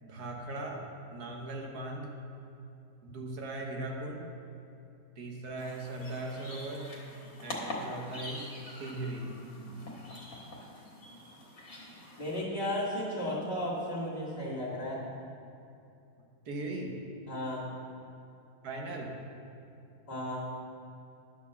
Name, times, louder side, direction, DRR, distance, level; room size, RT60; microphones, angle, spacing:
voice 1, 0.0-2.1 3.0-4.3 5.2-6.9 7.4-8.5 8.8-9.4 16.4-17.0 18.6-19.2, right 2 dB, 80° right, 1 dB, 1.6 m, -39 dB
sound 1, 5.6-12.4, left 1 dB, 65° left, 1.8 m, -44 dB
voice 2, 12.2-15.0 17.3-17.7 20.1-20.5, left 1 dB, 40° left, -5 dB, 2.4 m, -34 dB
10.5 x 4.6 x 6.9 m, 2.7 s
omnidirectional pair, 1.6 m